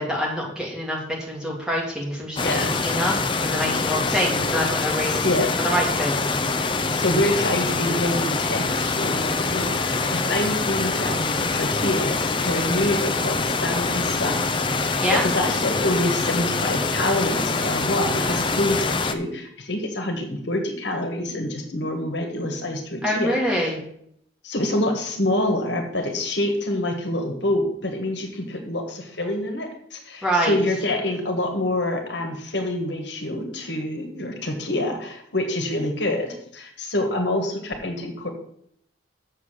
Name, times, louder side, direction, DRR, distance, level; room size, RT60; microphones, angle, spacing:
voice 1, 0.0-3.1 3.4-5.3 5.6-6.4 15.0-15.2 23.0-23.8 30.2-30.6, equal, 5° right, -3 dB, 2.3 m, -25 dB
voice 2, 2.4-2.7 3.8-3.9 5.1-5.5 6.9-14.4 14.8-23.7 24.4-38.3, left 1 dB, 65° left, 4 dB, 1.5 m, -26 dB
sound 1, 2.4-19.1, left 3 dB, 25° left, 0.5 m, -24 dB
7.2 x 6.6 x 6.4 m, 0.70 s
head